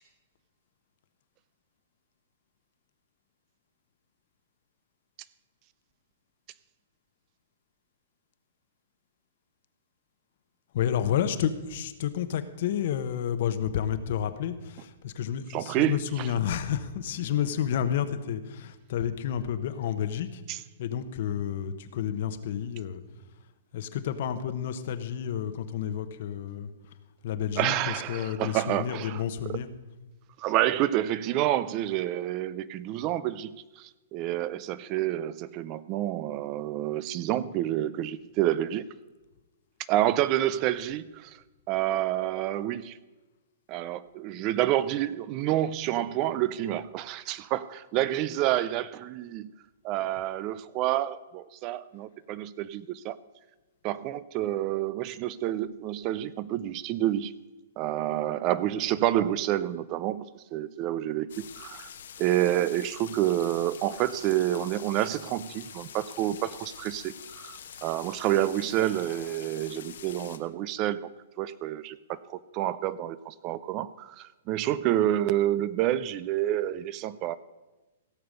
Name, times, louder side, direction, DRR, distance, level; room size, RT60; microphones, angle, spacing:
voice 1, 10.7-20.4 20.8-23.0 23.7-26.7 27.2-29.7, left 9 dB, 50° left, 11 dB, 1.0 m, -30 dB
voice 2, 15.5-16.3 20.5-20.6 27.6-29.2 30.4-38.8 39.9-41.4 41.7-43.0 43.7-49.5 49.8-53.2 53.8-57.3 57.8-61.3 61.6-61.9 62.2-71.1 71.4-77.4, right 13 dB, 30° right, 18 dB, 0.4 m, -28 dB
sound 1, 61.3-70.4, left 8 dB, 75° left, 1.1 m, -45 dB
16.5 x 6.9 x 6.6 m, 1.2 s
hypercardioid pair, 160°, 0 cm